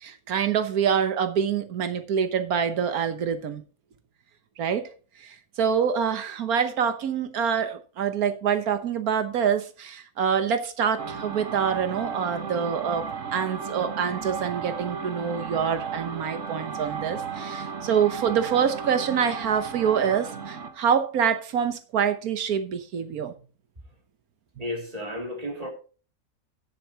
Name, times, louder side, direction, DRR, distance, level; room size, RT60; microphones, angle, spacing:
voice 1, 0.0-3.6 4.6-4.9 5.2-23.3, right 7 dB, 85° right, 1.5 m, -26 dB
sound 1, 11.0-20.8, right 6 dB, 60° right, 1.5 m, -34 dB
voice 2, 24.6-25.7, left 1 dB, 25° right, 2.8 m, -33 dB
12.5 x 10.5 x 2.9 m
omnidirectional pair, 1.5 m